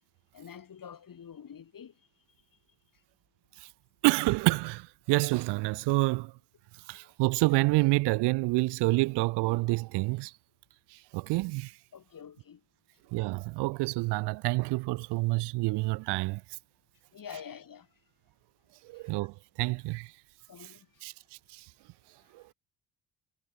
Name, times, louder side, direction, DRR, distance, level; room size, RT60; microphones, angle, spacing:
voice 1, 0.3-2.0 6.9-7.1 11.9-12.6 17.1-17.9 18.9-19.2 20.5-20.9, left 8 dB, 45° left, 4.4 m, -47 dB
voice 2, 4.0-6.3 6.9-10.3 10.9-11.8 13.1-16.4 18.8-20.1 20.6-20.7 21.0-21.1 21.5-21.7 22.3-22.4, right 23 dB, 60° right, 0.6 m, -28 dB
hypercardioid pair, 50°, 48 cm